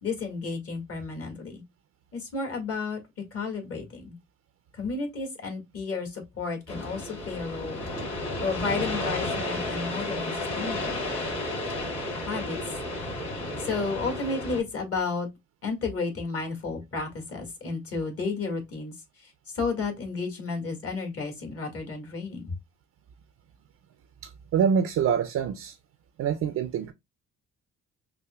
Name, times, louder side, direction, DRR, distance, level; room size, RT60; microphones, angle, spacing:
voice 1, 0.0-1.6 2.1-3.0 3.3-4.1 4.7-7.9 8.4-11.0 12.2-12.6 13.6-15.3 15.6-22.5, left 4 dB, 50° left, 1.7 m, -32 dB
sound 1, 6.7-14.6, left 2 dB, 65° left, 2.4 m, -32 dB
voice 2, 24.2-25.8 26.2-26.9, right 7 dB, 60° right, 0.5 m, -26 dB
5.6 x 2.1 x 2.2 m
cardioid pair, 90°, 30 cm